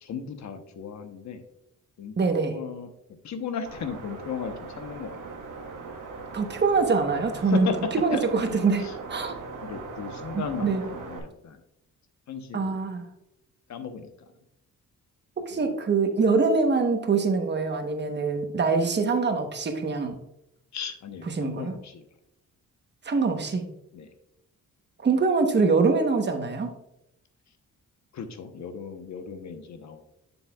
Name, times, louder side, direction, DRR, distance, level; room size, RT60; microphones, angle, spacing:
voice 1, 0.0-1.4 2.0-2.9 3.2-5.2 7.4-8.2 8.5-8.9 9.6-11.6 12.3-12.8 13.7-14.3 15.5-15.8 20.7-22.0 23.9-24.1 28.1-30.0, left 6 dB, 65° left, 8 dB, 1.0 m, -36 dB
voice 2, 2.2-2.5 6.3-7.7 8.0-9.3 10.3-10.8 12.5-13.0 15.5-20.2 21.4-21.7 23.0-23.7 25.0-26.7, right 4 dB, 35° right, 5 dB, 1.1 m, -24 dB
sound 1, 3.7-11.2, right 4 dB, 85° right, 1.5 m, -39 dB
7.5 x 7.1 x 2.3 m, 0.84 s
cardioid pair, 115°, 31 cm